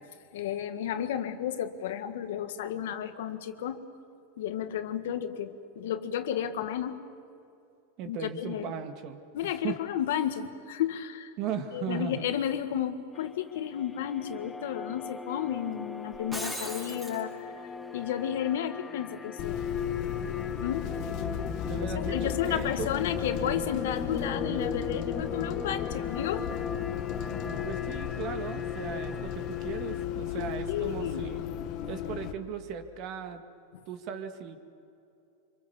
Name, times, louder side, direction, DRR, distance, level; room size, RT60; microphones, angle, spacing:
voice 1, 0.3-3.8 4.4-7.0 8.0-8.7 9.3-11.3 11.7-17.5 17.9-19.6 20.5-20.9 21.9-26.6 30.4-31.3, left 10 dB, 75° left, 8 dB, 1.8 m, -32 dB
voice 2, 8.0-9.8 11.4-12.3 21.6-22.9 27.3-31.4 31.9-33.4 33.9-34.6, right 8 dB, 45° right, 8 dB, 2.1 m, -37 dB
sound 1, 13.1-30.0, left 5 dB, 10° left, 1.1 m, -39 dB
Shatter, 16.1-17.2, equal, 10° right, 4.6 m, -37 dB
Bus, 19.4-32.3, left 10 dB, 45° left, 1.5 m, -35 dB
26.0 x 25.0 x 7.2 m, 2.6 s
supercardioid pair, 140°, 0 cm